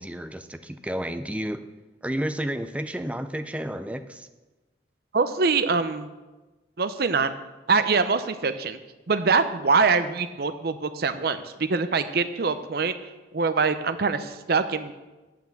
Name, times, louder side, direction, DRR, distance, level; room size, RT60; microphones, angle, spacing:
voice 1, 0.0-1.6 2.0-4.3, right 1 dB, 5° right, 9 dB, 0.4 m, -31 dB
voice 2, 5.1-6.1 6.8-7.3 7.7-8.8 9.1-12.9 13.3-14.9, right 4 dB, 60° right, 10 dB, 0.6 m, -24 dB
9.1 x 5.9 x 7.3 m, 1.2 s
head